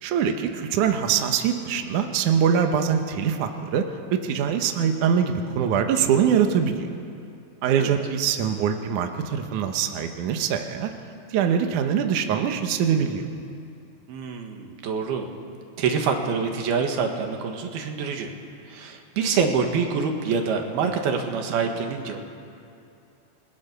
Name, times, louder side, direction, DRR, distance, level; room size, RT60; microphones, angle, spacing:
voice 1, 0.0-3.8 4.1-6.9 7.6-10.9 11.3-13.3, right 8 dB, 65° right, 5 dB, 2.4 m, -23 dB
voice 2, 14.1-15.3 15.8-18.4 18.7-22.2, right 5 dB, 85° right, 3 dB, 3.7 m, -26 dB
29.0 x 21.0 x 6.9 m, 2.6 s
omnidirectional pair, 4.3 m